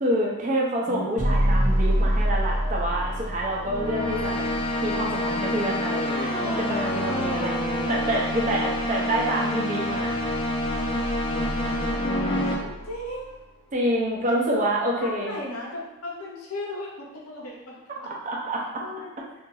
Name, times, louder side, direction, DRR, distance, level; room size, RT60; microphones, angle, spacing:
voice 1, 0.0-4.5 4.8-7.6 7.9-10.2 13.7-15.4 18.3-18.6, right 1 dB, 35° right, -2 dB, 0.6 m, -27 dB
sound 1, 0.9-1.1 3.7-12.6, left 1 dB, 25° left, 0.4 m, -27 dB
sound 2, 1.2-13.3, equal, 90° right, 0.7 m, -29 dB
voice 2, 12.6-13.4 15.0-18.1 18.8-19.2, left 1 dB, 85° left, -3 dB, 0.9 m, -36 dB
2.8 x 2.5 x 3.8 m, 0.98 s
head